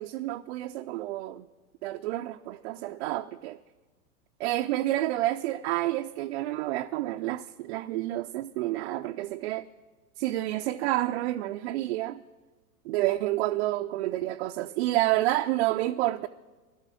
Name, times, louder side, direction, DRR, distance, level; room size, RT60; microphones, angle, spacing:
voice 1, 0.0-1.5 1.8-3.6 4.4-9.7 10.2-12.2 12.9-16.3, right 16 dB, 45° right, 6 dB, 0.5 m, -29 dB
12.5 x 11.5 x 6.2 m, 1.2 s
hypercardioid pair, 115°, 46 cm